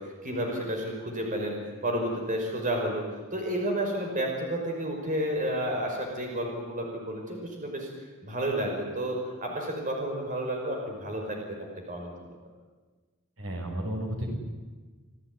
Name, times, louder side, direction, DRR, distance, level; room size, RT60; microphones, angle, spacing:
voice 1, 0.0-7.9 8.2-12.1, right 1 dB, 40° right, 1 dB, 5.6 m, -31 dB
voice 2, 13.4-14.3, equal, 70° right, 2 dB, 6.8 m, -32 dB
28.5 x 17.5 x 9.9 m, 1.3 s
head